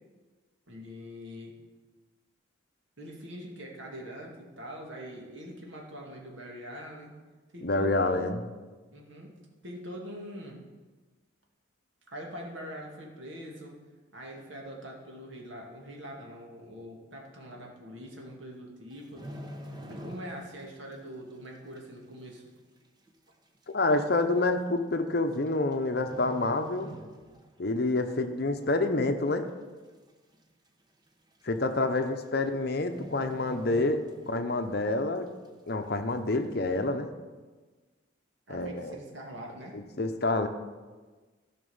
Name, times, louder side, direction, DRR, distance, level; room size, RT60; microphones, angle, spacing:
voice 1, 0.7-1.5 3.0-7.1 7.5-8.3 8.9-9.3 9.6-10.6 12.1-13.8 14.1-19.2 19.9-22.4 31.9-32.0 38.5-39.8, equal, 65° right, -1 dB, 2.3 m, -43 dB
voice 2, 7.6-8.4 23.7-26.9 27.6-29.5 31.4-35.3 35.7-37.1 38.5-38.9 39.7-40.5, left 2 dB, 50° left, 8 dB, 0.8 m, -28 dB
sound 1, 18.9-20.7 20.9-21.2 21.8-21.9 22.7-22.8 23.1-23.2 24.0-24.2 25.3-25.7 26.0-27.6 27.9-28.1 28.6-29.2 29.5-29.6 29.8-29.9 30.3-30.4 31.4-31.5 31.8-32.1 32.3-32.5 32.8-34.5 34.9-35.0, equal, 20° right, 0.9 m, -44 dB
14.5 x 5.9 x 5.6 m, 1.3 s
head